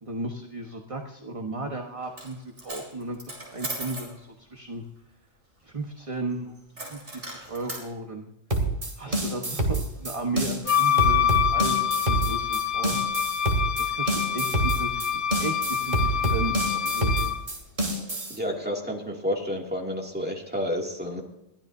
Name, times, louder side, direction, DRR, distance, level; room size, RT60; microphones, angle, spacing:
voice 1, 0.0-4.8 5.6-8.3 9.0-13.0 13.8-17.3, right 2 dB, 30° right, 2 dB, 1.3 m, -35 dB
Coin (dropping), 2.0-2.3 2.6-4.1 6.8-7.9, right 1 dB, 80° right, 4.8 m, -37 dB
sound 1, 8.5-18.4, right 2 dB, 45° right, 3.0 m, -27 dB
Wind instrument woodwind instrument, 10.7-17.4, left 9 dB, 80° left, 1.0 m, -26 dB
voice 2, 18.3-21.2, equal, 10° right, 0 dB, 2.4 m, -30 dB
22.0 x 15.0 x 2.7 m, 0.90 s
omnidirectional pair, 1.2 m